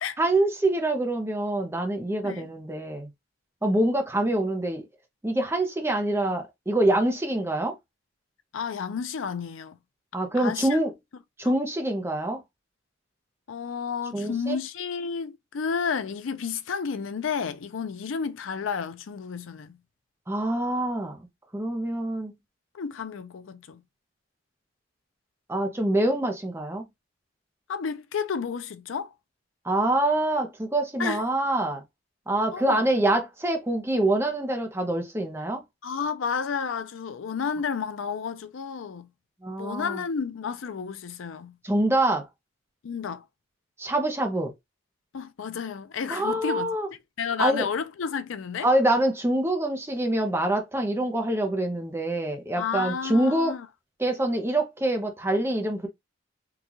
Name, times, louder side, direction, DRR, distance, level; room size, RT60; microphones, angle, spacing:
voice 1, 0.2-3.1 3.6-4.9 5.2-7.8 10.1-10.9 11.4-12.4 14.1-14.6 20.3-21.3 21.5-22.3 25.5-26.8 29.6-31.8 32.3-35.6 39.4-40.0 41.6-42.3 43.8-44.5 46.1-46.9 47.4-47.7 48.6-53.5 54.0-55.9, right 1 dB, 10° right, 0.6 m, -25 dB
voice 2, 8.5-9.8 10.4-10.8 11.4-11.6 13.5-19.8 22.7-23.8 27.7-29.1 31.0-31.3 32.5-32.8 35.8-39.1 39.6-41.6 42.8-43.2 45.1-46.7 47.2-48.7 52.6-53.7, left 6 dB, 85° left, 0.5 m, -31 dB
3.9 x 2.3 x 2.8 m
head